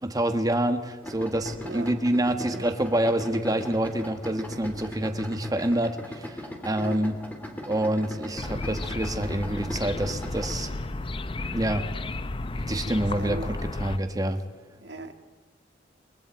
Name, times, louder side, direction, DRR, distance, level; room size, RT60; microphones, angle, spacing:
voice 1, 0.0-7.1 7.7-10.7 11.5-11.9 12.7-14.4, right 1 dB, 20° right, 7 dB, 1.5 m, -27 dB
Idling, 1.0-10.6, left 1 dB, 10° left, 3.0 m, -39 dB
voice 2, 2.5-2.9 6.8-7.0 12.7-13.6 14.8-15.1, right 2 dB, 65° right, 6 dB, 1.9 m, -39 dB
sound 1, 8.4-14.0, left 2 dB, 30° left, 0.6 m, -33 dB
29.5 x 23.0 x 4.4 m, 1.5 s
head